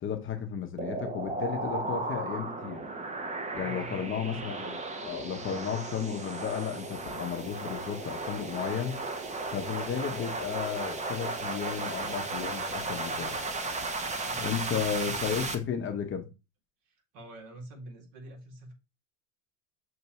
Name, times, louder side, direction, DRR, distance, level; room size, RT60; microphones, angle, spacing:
voice 1, 0.0-2.8 3.5-9.0 9.5-13.4 14.4-16.3, left 8 dB, 30° left, 0.7 m, -34 dB
sound 1, 0.8-15.5, right 3 dB, 15° right, 0.6 m, -35 dB
voice 2, 3.6-4.6 14.3-15.2 16.9-18.7, right 1 dB, 65° right, 1.9 m, -47 dB
6.7 x 2.6 x 2.9 m
supercardioid pair, 110°, 44 cm